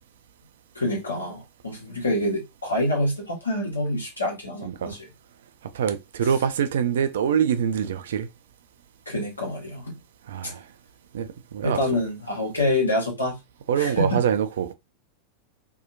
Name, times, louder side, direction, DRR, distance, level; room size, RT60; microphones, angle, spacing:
voice 1, 0.7-5.1 9.1-10.0 11.6-13.4 13.8-14.2, left 1 dB, 80° left, 1.2 m, -26 dB
voice 2, 4.6-5.0 5.7-8.3 10.3-10.6 11.1-11.8 13.7-14.7, right 8 dB, 60° right, 0.4 m, -25 dB
2.8 x 2.3 x 2.6 m
figure-of-eight pair, 90°, 0 cm